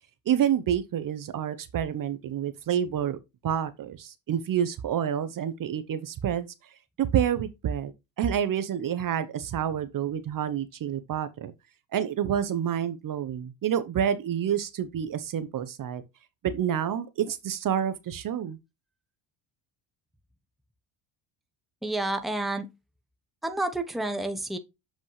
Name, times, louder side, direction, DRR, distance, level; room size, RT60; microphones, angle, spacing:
voice 1, 0.3-3.2 3.4-6.5 7.0-7.9 8.2-11.5 11.9-16.0 16.4-18.6, right 9 dB, 40° right, 0.8 m, -28 dB
voice 2, 21.8-22.7 23.4-24.6, right 2 dB, ahead, 0.9 m, -29 dB
7.3 x 5.2 x 3.2 m
supercardioid pair, 100°, 50 cm